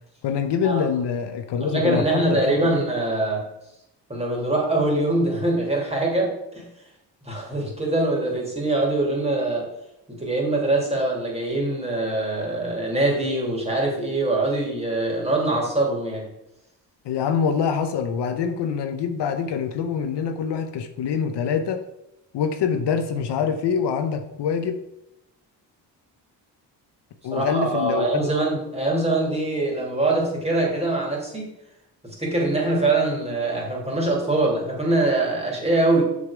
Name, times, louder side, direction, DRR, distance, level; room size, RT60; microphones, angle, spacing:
voice 1, 0.2-2.7 17.0-21.8 22.3-24.8 27.2-28.3, left 6 dB, 70° left, 7 dB, 0.8 m, -25 dB
voice 2, 1.6-3.4 4.1-6.7 7.2-9.7 10.1-16.3 27.3-31.5 32.0-36.1, right 2 dB, 15° right, -2 dB, 2.9 m, -23 dB
6.7 x 5.4 x 5.1 m, 0.86 s
cardioid pair, 75°, 43 cm